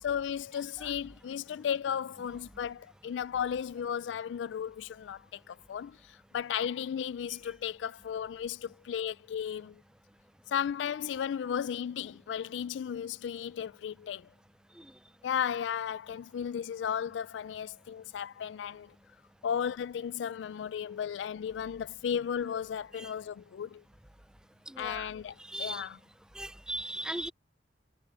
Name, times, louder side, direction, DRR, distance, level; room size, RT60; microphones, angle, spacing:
voice 1, 0.0-9.8 10.5-14.3 15.2-18.9 19.4-23.8 24.8-26.0, left 8 dB, 90° left, 0.3 m, -35 dB
voice 2, 24.7-25.1 25.4-25.8 26.3-27.3, right 1 dB, 5° right, 0.4 m, -38 dB
head